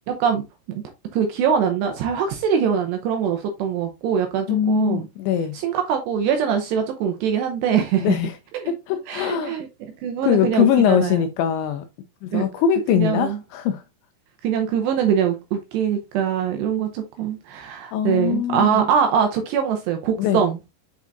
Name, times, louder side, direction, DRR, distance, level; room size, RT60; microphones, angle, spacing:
voice 1, 1.1-5.0 5.5-8.2 8.5-8.7 9.1-9.7 10.0-11.2 12.3-12.4 12.9-13.4 14.4-20.6, right 8 dB, 80° right, 2.5 m, -23 dB
voice 2, 4.5-5.6 8.0-8.3 8.6-9.6 10.2-11.8 12.2-13.8 17.9-18.8 20.2-20.4, left 9 dB, 85° left, 2.6 m, -21 dB
8.2 x 4.7 x 2.6 m
omnidirectional pair, 5.7 m